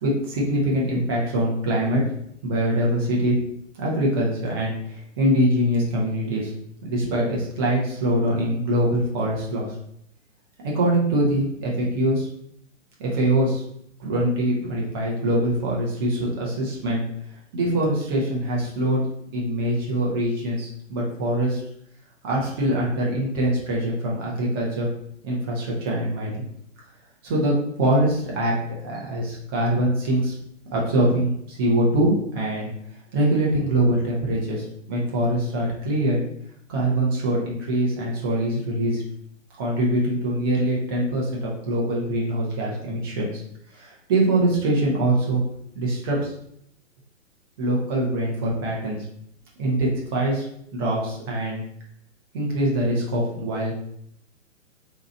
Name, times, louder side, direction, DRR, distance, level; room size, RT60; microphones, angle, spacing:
voice 1, 0.0-2.0 2.4-3.4 3.8-6.5 6.8-9.7 10.7-12.3 13.0-13.6 14.0-17.0 17.5-19.0 19.3-21.6 22.2-24.9 25.2-26.4 27.2-28.6 28.8-30.3 30.7-32.7 33.1-36.2 36.7-39.0 39.6-43.4 43.7-45.4 45.7-46.3 47.6-49.0 49.6-50.5 50.7-51.6 52.3-53.7, right 1 dB, 20° right, -4 dB, 0.5 m, -23 dB
2.8 x 2.3 x 3.9 m, 0.71 s
figure-of-eight pair, 125°, 39 cm